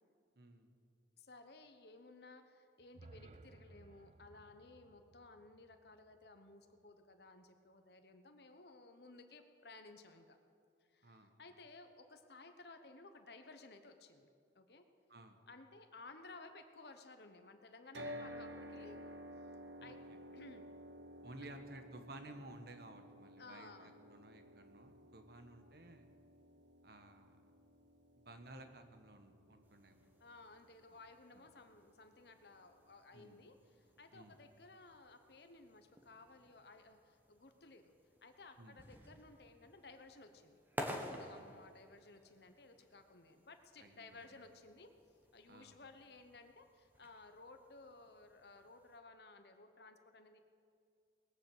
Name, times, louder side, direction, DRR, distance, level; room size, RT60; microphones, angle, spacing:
voice 1, 0.4-0.8 11.0-11.3 15.1-15.4 19.8-20.2 21.2-26.1 26.8-27.4 28.2-30.0 31.3-31.4 33.1-33.4 34.1-34.4 38.6-38.8 43.8-44.4 45.5-45.8, right 2 dB, 60° right, 7 dB, 1.3 m, -55 dB
voice 2, 1.2-10.4 10.9-14.3 14.5-14.9 15.5-19.1 19.8-20.0 20.3-20.6 23.4-24.0 30.2-37.9 38.2-44.9 45.3-50.4, left 3 dB, 60° left, 7 dB, 1.1 m, -57 dB
sound 1, 2.8-6.9, right 3 dB, 35° right, 0.4 m, -61 dB
sound 2, 17.9-32.1, equal, 75° right, 1.2 m, -54 dB
sound 3, 29.6-49.0, equal, 10° right, 1.2 m, -54 dB
20.0 x 7.5 x 7.9 m, 2.3 s
head